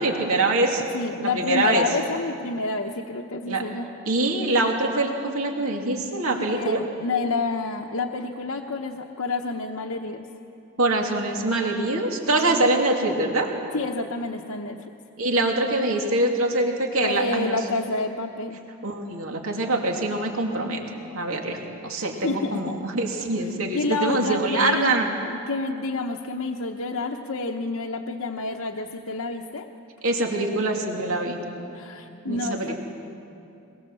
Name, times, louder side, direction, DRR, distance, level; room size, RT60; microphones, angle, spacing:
voice 1, 0.0-0.8 1.2-1.8 3.5-3.6 4.1-6.8 10.8-13.5 15.2-17.6 18.8-20.8 21.1-25.1 30.0-31.4 32.3-32.7, right 2 dB, 75° right, 1 dB, 2.8 m, -24 dB
voice 2, 0.9-3.9 6.3-10.2 12.5-12.7 13.7-14.9 17.0-18.6 22.1-22.7 23.7-29.7 31.7-32.8, left 3 dB, 75° left, 1 dB, 1.0 m, -29 dB
22.5 x 21.5 x 7.7 m, 2.7 s
head